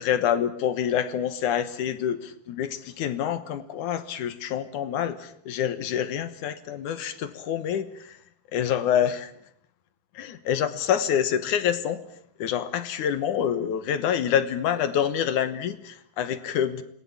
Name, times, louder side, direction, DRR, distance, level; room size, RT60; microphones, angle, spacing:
voice 1, 0.0-8.2 8.5-9.3 10.1-12.0 12.4-16.8, left 9 dB, 65° left, 13 dB, 2.1 m, -27 dB
27.0 x 20.0 x 8.5 m, 0.66 s
omnidirectional pair, 4.8 m